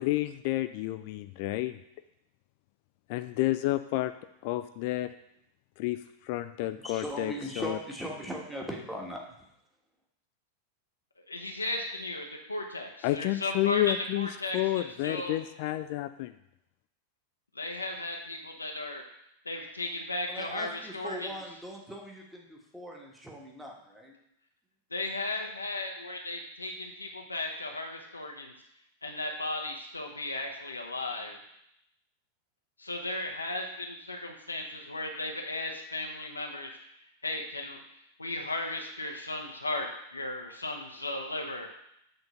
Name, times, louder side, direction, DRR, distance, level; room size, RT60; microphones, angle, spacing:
voice 1, 0.0-1.8 3.1-4.1 4.4-5.1 5.8-6.0 6.2-7.8 13.0-14.3 14.5-16.3, left 16 dB, 45° left, 11 dB, 0.3 m, -30 dB
voice 2, 6.6-9.5 20.3-24.2, equal, 5° right, -1 dB, 1.5 m, -40 dB
voice 3, 11.3-15.4 17.5-19.0 19.4-21.3 24.9-28.5 29.0-31.4 32.8-36.7 37.2-37.8 38.2-41.7, left 2 dB, 80° left, 1 dB, 0.8 m, -35 dB
8.0 x 3.9 x 5.6 m, 0.79 s
figure-of-eight pair, 90°, 0 cm